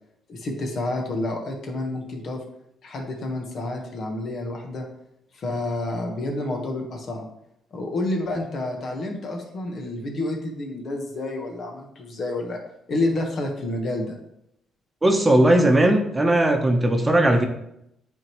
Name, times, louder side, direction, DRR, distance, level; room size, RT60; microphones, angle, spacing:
voice 1, 0.3-2.4 2.8-4.8 5.3-7.3 7.7-12.6 12.9-14.2, left 2 dB, 60° left, 2 dB, 1.3 m, -29 dB
voice 2, 15.0-17.5, right 1 dB, 20° right, 4 dB, 0.9 m, -18 dB
8.6 x 3.7 x 3.1 m, 0.79 s
cardioid pair, 80°, 0 cm